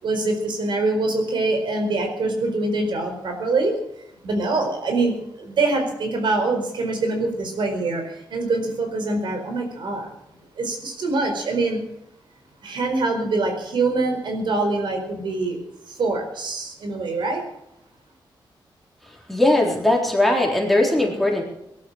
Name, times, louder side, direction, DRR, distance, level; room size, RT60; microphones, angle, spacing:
voice 1, 0.0-3.7 4.2-10.1 10.6-11.8 12.6-15.6 15.9-17.4, right 3 dB, 75° right, 4 dB, 4.6 m, -24 dB
voice 2, 19.3-21.4, left 1 dB, ahead, -1 dB, 3.8 m, -19 dB
19.0 x 11.5 x 6.4 m, 0.81 s
wide cardioid pair, 130°, 8 cm